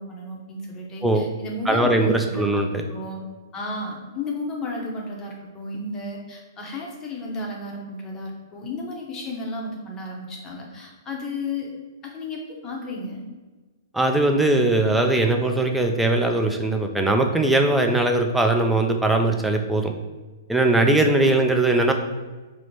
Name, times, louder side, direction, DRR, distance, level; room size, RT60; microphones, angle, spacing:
voice 1, 0.0-2.6 2.9-3.2 3.5-11.8 12.0-13.2, left 2 dB, 20° left, -1 dB, 0.7 m, -33 dB
voice 2, 1.7-2.7 13.9-19.9 20.5-21.9, right 2 dB, 5° right, 3 dB, 0.3 m, -20 dB
4.9 x 2.0 x 3.0 m, 1.3 s
hypercardioid pair, 135°, 2 cm